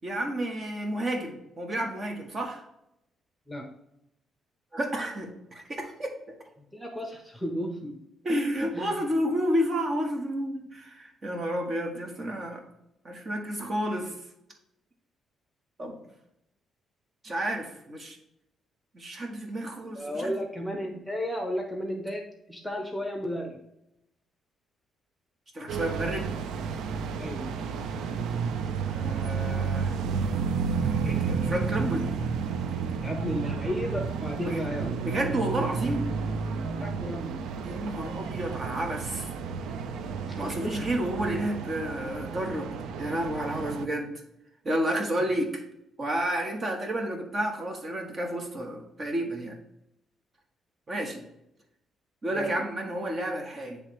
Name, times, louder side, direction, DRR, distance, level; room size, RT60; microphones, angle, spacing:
voice 1, 0.0-2.6 4.7-6.1 8.2-12.6 13.0-14.1 15.8-15.9 17.2-18.2 18.9-20.3 25.5-26.3 28.9-30.0 31.0-32.1 34.4-34.6 35.0-36.1 37.6-39.3 40.3-42.7 43.0-44.1 44.6-45.5 46.0-49.6 50.9-51.3 52.2-53.8, right 1 dB, 35° right, 3 dB, 1.4 m, -31 dB
voice 2, 6.7-8.0 8.7-9.0 19.8-23.6 27.2-27.5 33.0-35.0 36.6-37.4 40.3-40.8 52.3-52.6, equal, 5° left, 3 dB, 1.0 m, -33 dB
sound 1, 25.7-43.9, right 6 dB, 80° right, 0.5 m, -31 dB
9.7 x 3.3 x 3.2 m, 0.83 s
cardioid pair, 90°, 0 cm